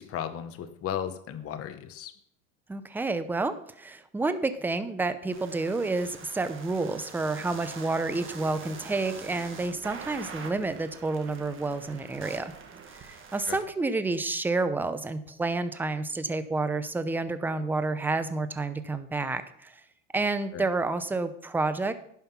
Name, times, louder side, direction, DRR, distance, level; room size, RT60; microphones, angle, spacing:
voice 1, 0.0-2.1 13.5-13.6 20.5-20.7, left 9 dB, 30° left, 9 dB, 1.0 m, -35 dB
voice 2, 2.7-12.5 12.9-19.7 20.1-21.9, right 3 dB, 5° right, 11 dB, 0.6 m, -29 dB
sound 1, 5.3-13.6, right 5 dB, 30° right, 1.8 m, -44 dB
10.5 x 5.8 x 5.7 m, 0.68 s
supercardioid pair, 115°, 44 cm